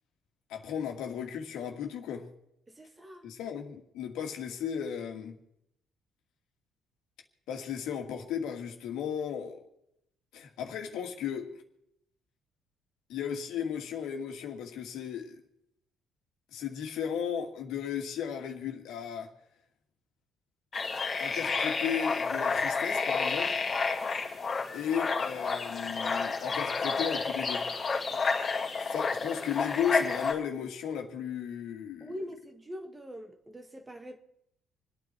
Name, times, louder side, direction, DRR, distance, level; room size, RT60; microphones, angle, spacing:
voice 1, 0.5-2.3 3.2-5.4 7.5-9.6 10.3-11.5 13.1-15.4 16.5-19.3 21.2-23.6 24.7-27.7 28.4-28.5 28.9-32.1, left 8 dB, 80° left, 2.2 m, -35 dB
voice 2, 2.7-3.3 32.0-34.2, equal, 15° right, 1.8 m, -43 dB
sound 1, 20.7-30.3, left 4 dB, 35° left, 2.5 m, -30 dB
27.5 x 9.4 x 4.5 m
cardioid pair, 125°, 0 cm